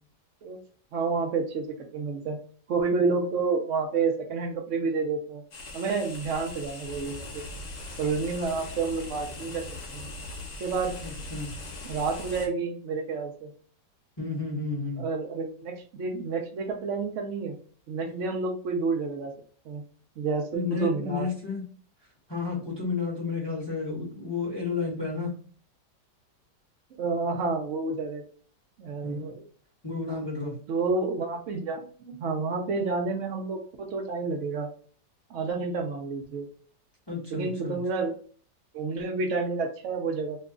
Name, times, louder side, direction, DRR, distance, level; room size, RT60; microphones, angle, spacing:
voice 1, 0.9-2.4 2.7-5.4 5.7-7.4 8.0-9.7 9.9-10.1 10.6-11.0 11.8-13.5 15.0-17.6 17.9-19.3 19.7-19.8 20.2-21.3 27.0-28.2 28.8-29.5 30.7-34.7 35.3-36.5 37.3-38.1 38.7-40.4, right 4 dB, 70° right, 2 dB, 0.7 m, -29 dB
sound 1, 5.5-12.5, left 2 dB, 55° left, 1.0 m, -40 dB
voice 2, 11.0-11.5 14.2-15.1 20.5-21.6 22.3-25.3 29.0-29.2 29.8-30.6 37.1-37.8, left 4 dB, 20° left, -4 dB, 0.8 m, -31 dB
3.0 x 2.3 x 3.5 m, 0.44 s
omnidirectional pair, 1.9 m